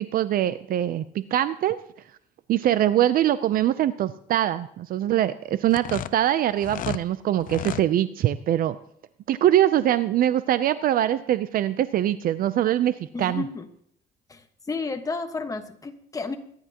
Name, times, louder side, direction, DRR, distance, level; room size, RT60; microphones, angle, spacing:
voice 1, 0.0-1.8 2.5-8.8 9.3-13.4, right 12 dB, 60° right, 14 dB, 0.6 m, -23 dB
sound 1, 5.6-7.0 7.4-7.9, left 12 dB, 55° left, 0.5 m, -33 dB
voice 2, 13.1-13.7 14.3-16.4, left 4 dB, 20° left, 7 dB, 1.4 m, -32 dB
24.0 x 10.5 x 2.9 m, 0.67 s
cardioid pair, 110°, 17 cm